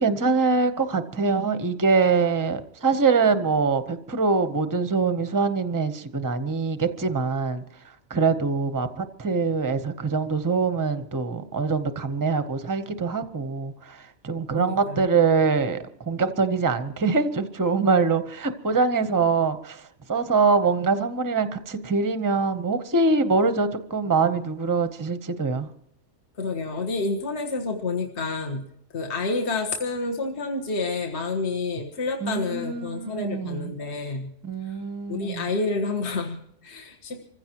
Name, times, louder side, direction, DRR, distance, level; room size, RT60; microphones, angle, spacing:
voice 1, 0.0-7.6 8.1-15.8 16.1-19.8 20.1-25.7 32.2-33.7 34.4-35.5, right 4 dB, 20° right, 10 dB, 0.7 m, -24 dB
voice 2, 14.6-15.1 26.4-28.6 28.9-34.3 34.6-34.8 35.1-37.2, left 3 dB, 45° left, 2 dB, 1.7 m, -29 dB
26.5 x 15.5 x 3.0 m, 0.71 s
omnidirectional pair, 1.6 m